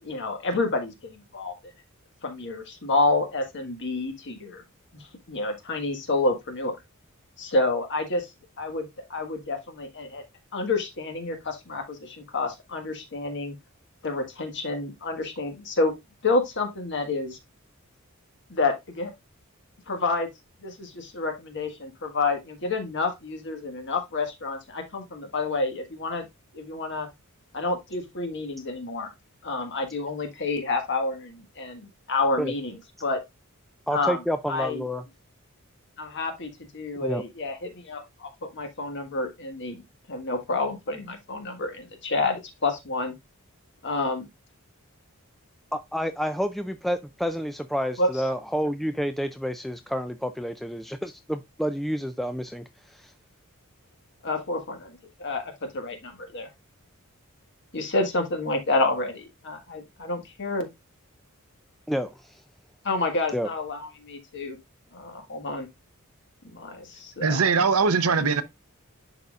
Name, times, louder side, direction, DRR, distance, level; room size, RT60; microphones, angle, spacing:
voice 1, 0.0-1.5 2.2-4.6 4.9-6.7 7.4-8.3 8.6-10.2 10.5-13.5 14.0-15.9 16.2-17.4 18.5-19.1 19.9-20.3 20.6-26.3 26.5-27.1 27.5-29.1 29.4-33.2 33.9-34.2 34.5-34.8 36.0-39.8 40.1-43.1 43.8-44.2 48.0-48.2 54.2-56.5 57.7-60.7 62.8-64.6 64.9-65.7 66.5-67.5, left 3 dB, 55° left, 1.6 m, -29 dB
voice 2, 33.9-35.0 37.0-37.2 45.7-52.6 52.9-53.1 61.9-62.4 63.3-63.5, equal, ahead, 0.3 m, -29 dB
voice 3, 67.2-68.4, right 5 dB, 75° right, 0.7 m, -21 dB
10.5 x 4.0 x 2.4 m
head